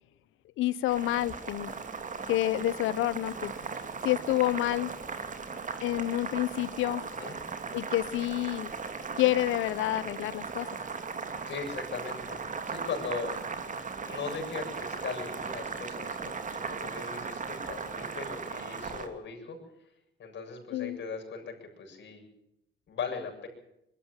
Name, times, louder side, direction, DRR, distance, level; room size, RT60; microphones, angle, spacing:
voice 1, 0.6-1.7 2.3-3.5 4.0-4.9 5.8-7.0 7.7-8.7 9.2-10.7 20.7-21.0, left 15 dB, 90° left, 19 dB, 0.9 m, -28 dB
Boiling, 0.9-19.1, right 5 dB, 40° right, 2.6 m, -38 dB
voice 2, 7.0-7.4 11.5-13.4 14.0-19.6 20.2-22.2 22.9-23.5, left 5 dB, 65° left, 3 dB, 7.5 m, -39 dB
22.0 x 13.0 x 10.0 m, 0.82 s
cardioid pair, 90°, 20 cm